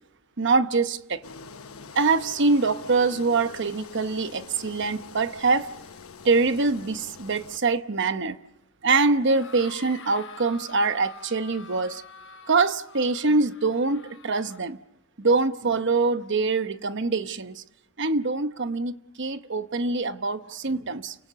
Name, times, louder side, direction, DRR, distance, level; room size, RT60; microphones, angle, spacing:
voice 1, 0.4-1.2 1.9-5.7 6.2-8.4 8.8-12.0 12.5-14.8 15.2-17.6 18.0-21.1, right 3 dB, 55° right, 1.0 m, -24 dB
Engine, 1.2-7.6, left 4 dB, 80° left, 1.2 m, -44 dB
sound 1, 9.2-14.6, left 5 dB, 60° left, 5.2 m, -46 dB
29.5 x 24.5 x 6.9 m
head